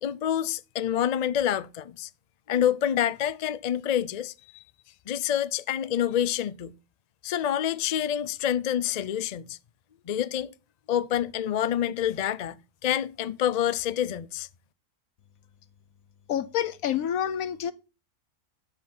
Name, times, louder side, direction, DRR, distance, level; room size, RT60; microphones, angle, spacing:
voice 1, 0.0-2.1 2.5-4.6 5.1-6.7 7.2-9.6 10.1-10.5 10.9-14.5, left 10 dB, 55° left, 0.4 m, -27 dB
voice 2, 16.3-17.7, left 10 dB, 85° left, 1.3 m, -28 dB
12.5 x 4.3 x 7.7 m
omnidirectional pair, 1.4 m